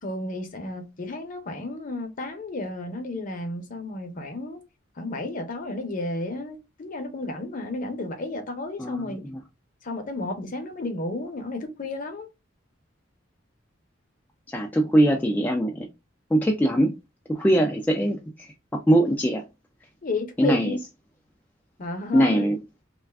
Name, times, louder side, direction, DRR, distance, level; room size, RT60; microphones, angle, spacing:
voice 1, 0.0-4.6 5.0-9.2 9.8-12.3 20.0-20.8 21.8-22.5, left 2 dB, 45° left, 0.6 m, -32 dB
voice 2, 8.8-9.4 14.5-15.9 16.3-16.9 17.3-19.4 20.4-20.8 22.1-22.6, right 1 dB, 10° left, 0.3 m, -22 dB
2.4 x 2.3 x 3.3 m
head